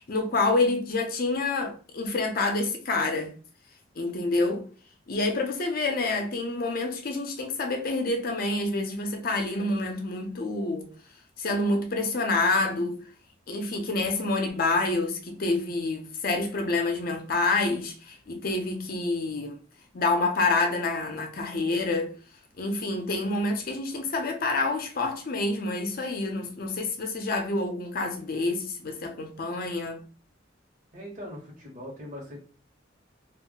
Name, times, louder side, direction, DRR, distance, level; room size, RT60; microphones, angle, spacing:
voice 1, 0.0-3.3 4.0-4.7 5.1-10.9 11.4-13.0 13.5-19.6 19.9-22.1 22.6-30.0, left 2 dB, 50° left, 0.6 m, -27 dB
voice 2, 30.9-32.4, equal, 40° right, 1.1 m, -40 dB
2.4 x 2.1 x 3.7 m
head